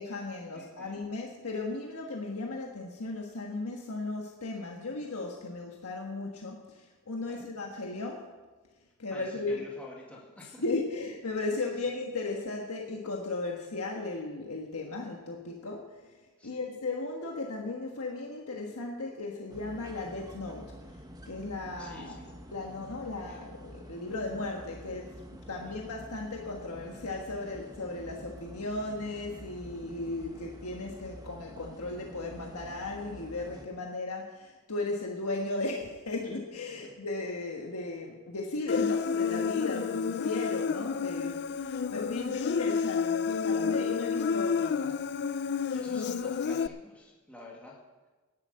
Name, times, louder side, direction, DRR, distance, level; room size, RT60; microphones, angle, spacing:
voice 1, 0.0-8.3 9.0-9.6 10.6-16.0 16.4-20.8 21.2-22.2 22.5-45.1, left 2 dB, 75° left, 0 dB, 1.5 m, -36 dB
voice 2, 0.5-1.0 7.2-7.5 9.1-10.6 11.5-11.6 16.4-16.6 21.8-22.3 23.3-23.4 25.5-25.8 36.7-36.9 45.7-47.8, left 1 dB, 5° left, -3 dB, 2.1 m, -49 dB
sound 1, 19.5-33.7, equal, 15° right, 1.2 m, -48 dB
Human voice, 38.7-46.7, left 6 dB, 50° left, 0.4 m, -30 dB
13.0 x 10.5 x 6.5 m, 1.3 s
head